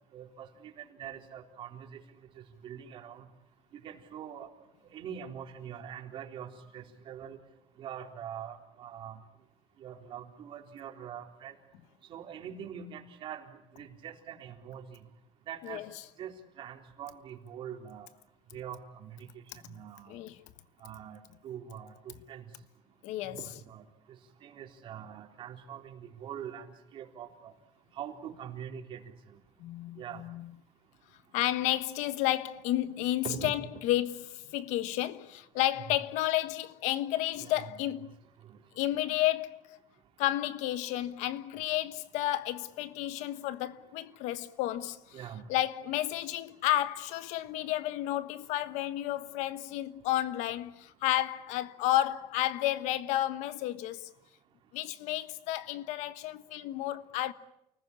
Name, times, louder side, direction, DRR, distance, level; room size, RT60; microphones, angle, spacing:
voice 1, 0.1-2.0 2.6-3.2 3.7-4.5 4.9-7.4 7.8-9.2 9.8-11.5 12.1-13.4 13.7-15.0 15.5-15.8 16.2-18.1 18.5-19.3 19.7-20.2 20.8-21.2 21.4-22.4 23.2-23.8 24.4-26.7 26.9-27.5 28.0-29.0 30.0-30.2 33.2-33.8 37.4-37.8 38.9-39.1 45.1-45.4, right 9 dB, 45° right, 3.9 m, -43 dB
voice 2, 20.1-20.4 23.0-23.4 29.6-30.5 31.3-38.1 38.8-39.8 40.2-45.2 45.5-54.1 54.7-57.3, left 14 dB, 85° left, 1.3 m, -31 dB
29.5 x 20.0 x 9.8 m
cardioid pair, 165°, 12 cm